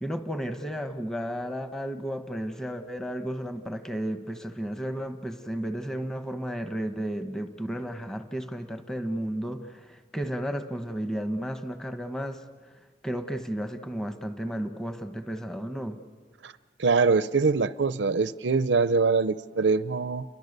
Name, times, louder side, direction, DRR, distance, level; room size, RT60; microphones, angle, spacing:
voice 1, 0.0-12.4 13.0-16.0, equal, 5° left, 7 dB, 1.2 m, -33 dB
voice 2, 16.8-20.2, right 4 dB, 85° right, 13 dB, 0.6 m, -23 dB
30.0 x 23.5 x 6.8 m, 1.5 s
head